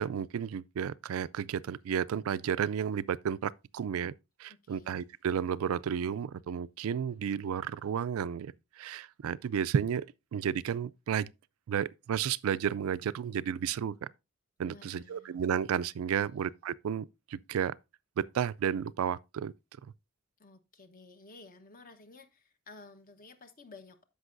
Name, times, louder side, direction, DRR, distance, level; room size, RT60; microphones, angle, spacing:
voice 1, 0.0-4.1 4.4-8.5 8.8-10.0 10.3-11.3 11.7-14.0 14.6-17.1 17.3-17.7 18.2-19.5, right 8 dB, 75° right, 0.3 m, -32 dB
voice 2, 4.5-5.0 14.6-15.3 16.1-16.4 20.4-24.0, left 3 dB, 40° left, 0.9 m, -54 dB
14.5 x 5.3 x 2.5 m
head